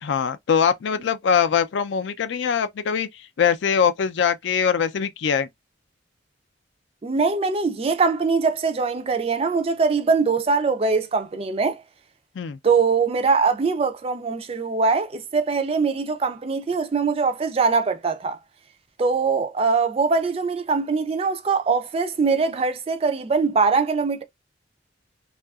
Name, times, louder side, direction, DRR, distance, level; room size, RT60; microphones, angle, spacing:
voice 1, 0.0-3.1 3.4-5.5 12.4-12.6, left 7 dB, 70° left, 0.4 m, -22 dB
voice 2, 7.0-11.8 12.6-18.4 19.0-24.2, right 4 dB, 30° right, 0.3 m, -22 dB
2.7 x 2.3 x 2.2 m
head